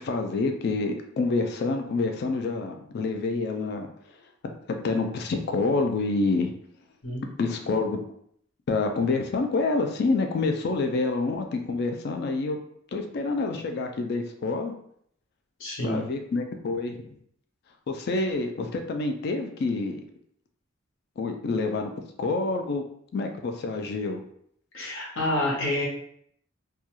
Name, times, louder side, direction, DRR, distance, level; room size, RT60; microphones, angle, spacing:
voice 1, 0.0-3.9 4.4-4.5 4.8-6.5 7.4-8.0 8.7-12.6 12.9-14.7 15.8-17.2 17.9-20.0 21.2-21.9 22.2-22.8 23.1-24.2, left 3 dB, 55° left, 5 dB, 0.3 m, -27 dB
voice 2, 15.6-16.0 24.7-25.9, left 1 dB, 75° left, -2 dB, 0.8 m, -28 dB
2.3 x 2.2 x 2.9 m, 0.68 s
head